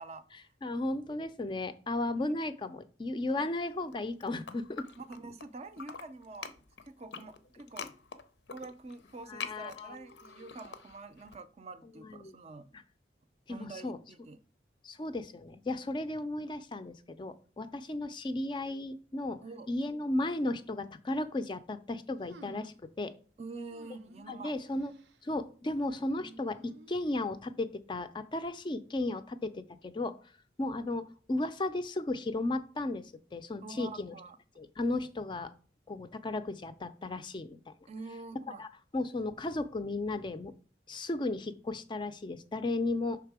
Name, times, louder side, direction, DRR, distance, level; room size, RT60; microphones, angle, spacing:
voice 1, 0.0-0.5 3.3-3.5 5.0-7.9 8.5-12.7 13.5-14.4 19.4-19.7 23.4-24.5 33.6-34.4 37.9-38.6, right 3 dB, 35° right, 0.4 m, -46 dB
voice 2, 0.6-4.9 9.3-10.0 10.4-10.5 12.0-12.3 12.7-12.8 13.5-14.0 14.8-23.1 24.3-24.9 25.2-30.1 30.6-34.1 34.6-35.5 35.9-37.6 38.6-38.7 38.9-40.5 40.9-43.2, left 2 dB, 25° left, 0.4 m, -35 dB
sound 1, 3.8-5.5 5.7-11.4, left 6 dB, 85° left, 0.6 m, -45 dB
sound 2, 22.3-22.9 23.7-24.4 24.7-25.2 26.0-27.2, right 2 dB, 90° right, 0.6 m, -53 dB
5.8 x 3.5 x 4.7 m
head